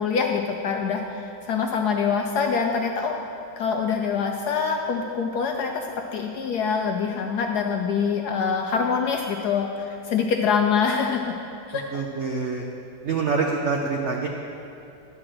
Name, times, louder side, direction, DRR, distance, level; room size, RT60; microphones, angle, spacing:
voice 1, 0.0-3.2 3.6-11.3 11.7-12.0, left 6 dB, 70° left, 3 dB, 1.0 m, -25 dB
voice 2, 11.9-12.6 13.0-14.3, right 4 dB, 85° right, 0 dB, 0.6 m, -25 dB
11.5 x 4.8 x 7.5 m, 2.7 s
omnidirectional pair, 2.1 m